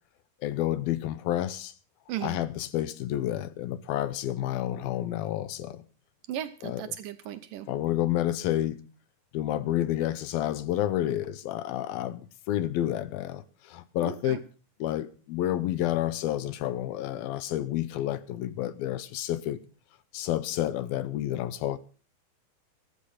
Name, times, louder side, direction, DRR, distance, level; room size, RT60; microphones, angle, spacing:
voice 1, 0.4-1.7 2.2-5.8 6.6-7.0 7.7-8.8 9.3-12.2 12.5-14.4 14.8-19.6 20.1-21.8, left 13 dB, 75° left, 2.6 m, -30 dB
voice 2, 6.3-7.7 14.0-14.4, right 11 dB, 70° right, 2.3 m, -36 dB
14.0 x 13.5 x 5.7 m
omnidirectional pair, 4.4 m